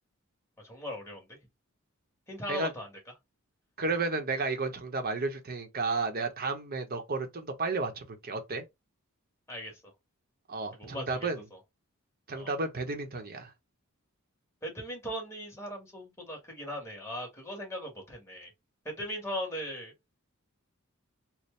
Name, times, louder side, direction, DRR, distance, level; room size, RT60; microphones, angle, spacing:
voice 1, 0.6-1.4 2.3-2.9 9.5-9.9 10.7-11.6 12.4-12.5 14.6-18.5 18.8-19.9, equal, 15° left, 1.5 m, -39 dB
voice 2, 3.8-8.6 10.5-11.4 12.3-13.5, right 3 dB, 45° right, 0.9 m, -32 dB
4.3 x 2.1 x 3.2 m
head